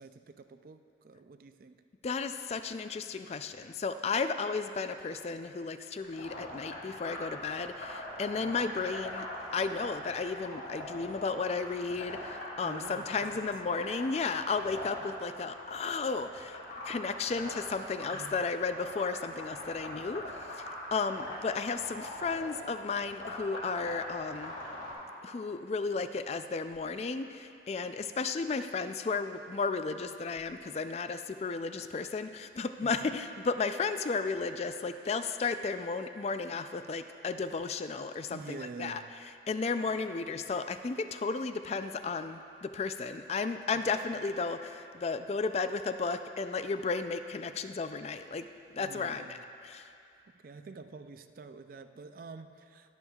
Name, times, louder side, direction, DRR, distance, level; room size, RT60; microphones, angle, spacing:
voice 1, 0.0-1.8 8.3-8.6 12.6-13.8 18.1-18.4 32.8-33.1 38.3-39.1 39.8-40.1 43.7-44.1 48.8-49.4 50.4-53.0, right 4 dB, 50° right, 9 dB, 0.4 m, -48 dB
voice 2, 2.0-9.3 9.5-16.6 16.8-20.2 20.5-24.5 25.2-39.0 39.5-48.5 48.7-49.4 49.6-49.9, left 4 dB, 35° left, 10 dB, 0.3 m, -34 dB
sound 1, 6.0-24.9, left 1 dB, 75° left, 2.5 m, -42 dB
21.0 x 7.2 x 2.3 m, 2.5 s
head